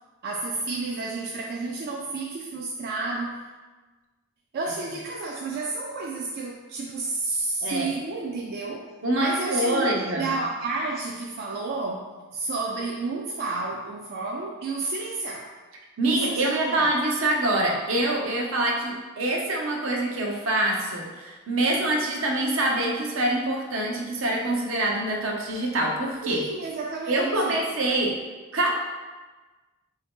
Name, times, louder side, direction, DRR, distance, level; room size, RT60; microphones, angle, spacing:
voice 1, 0.2-3.4 4.5-8.8 9.2-12.1 12.3-15.5 16.0-17.0 26.2-27.6, right 3 dB, 50° right, -1 dB, 0.3 m, -31 dB
voice 2, 9.0-10.4 16.0-26.4 27.1-28.2 28.5-28.8, right 1 dB, 75° right, 0 dB, 0.7 m, -25 dB
3.8 x 2.8 x 3.5 m, 1.3 s
head